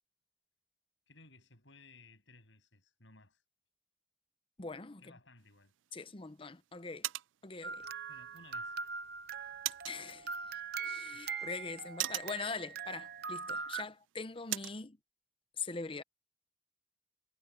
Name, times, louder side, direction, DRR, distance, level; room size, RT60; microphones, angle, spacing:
voice 1, 1.1-3.4 5.0-6.1 8.1-8.8 11.1-11.2, left 3 dB, 75° left, 7.9 m, -60 dB
voice 2, 4.6-5.0 5.9-7.1 7.4-7.9 9.8-10.5 10.8-15.0 15.6-16.0, left 4 dB, 30° left, 0.8 m, -42 dB
sound 1, 5.4-14.8, right 17 dB, 85° right, 0.4 m, -45 dB
sound 2, 7.6-13.8, right 5 dB, 55° right, 0.8 m, -41 dB
head